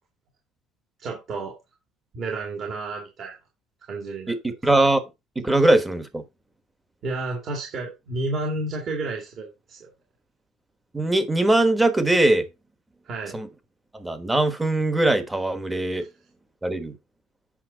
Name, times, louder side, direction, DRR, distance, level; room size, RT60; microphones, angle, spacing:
voice 1, 1.0-1.6 2.1-3.4 3.9-4.3 7.0-9.9 13.0-13.4 16.0-16.1, right 2 dB, 40° right, 2.2 m, -31 dB
voice 2, 4.3-5.0 5.4-6.2 10.9-12.5 13.3-13.5 13.9-16.0 16.6-16.9, right 2 dB, 10° right, 1.2 m, -21 dB
8.5 x 5.7 x 3.9 m
cardioid pair, 160°, 0 cm